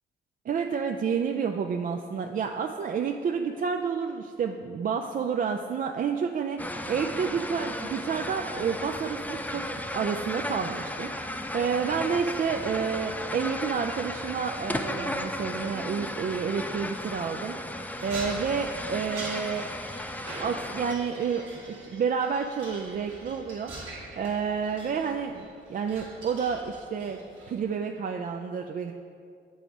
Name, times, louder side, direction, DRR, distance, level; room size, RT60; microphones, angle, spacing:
voice 1, 0.5-9.6 9.9-19.7 20.4-27.2 27.5-28.9, right 6 dB, 45° right, 3 dB, 0.4 m, -30 dB
sound 1, 6.6-20.9, left 1 dB, 10° left, 0.5 m, -35 dB
sound 2, 18.0-27.7, right 2 dB, 90° right, 1.3 m, -43 dB
7.6 x 3.9 x 4.8 m, 2.3 s
supercardioid pair, 55°, 19 cm